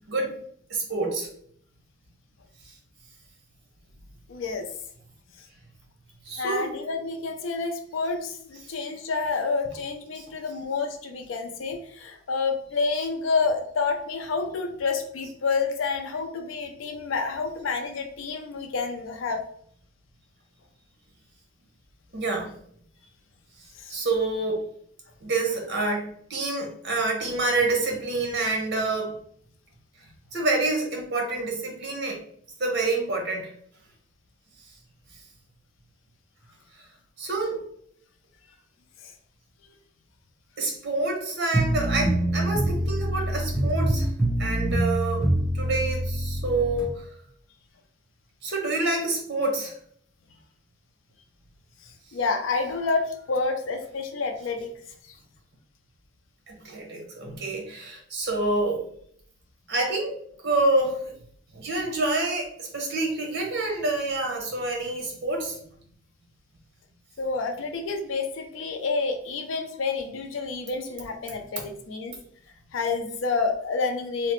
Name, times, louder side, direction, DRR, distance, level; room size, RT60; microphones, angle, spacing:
voice 1, 0.1-0.4 0.7-1.3 6.3-6.7 10.2-10.3 22.1-22.5 23.9-24.6 25.2-29.1 30.3-32.2 32.6-33.5 37.2-37.6 40.6-44.1 44.4-45.3 45.5-47.1 48.4-49.7 56.5-58.8 59.7-60.2 60.4-61.1 61.5-65.6, right 2 dB, 60° right, 1 dB, 0.8 m, -27 dB
voice 2, 4.3-4.7 6.4-19.4 23.8-24.0 39.0-39.1 51.8-54.7 67.2-72.1 72.7-74.3, left 4 dB, 80° left, 5 dB, 0.4 m, -29 dB
sound 1, 41.5-46.9, right 1 dB, 5° right, 0.9 m, -25 dB
2.8 x 2.0 x 3.0 m, 0.62 s
head